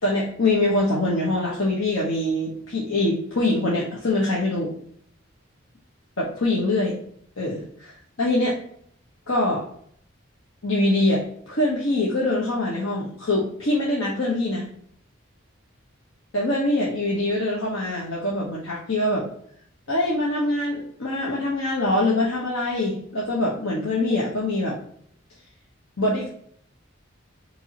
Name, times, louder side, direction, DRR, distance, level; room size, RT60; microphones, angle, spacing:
voice 1, 0.0-4.7 6.2-7.0 7.4-7.9 8.2-8.6 9.3-9.6 10.6-14.7 16.3-19.2 19.9-24.7 26.0-26.3, left 1 dB, 80° left, -4 dB, 1.3 m, -24 dB
8.6 x 3.6 x 3.0 m, 0.63 s
head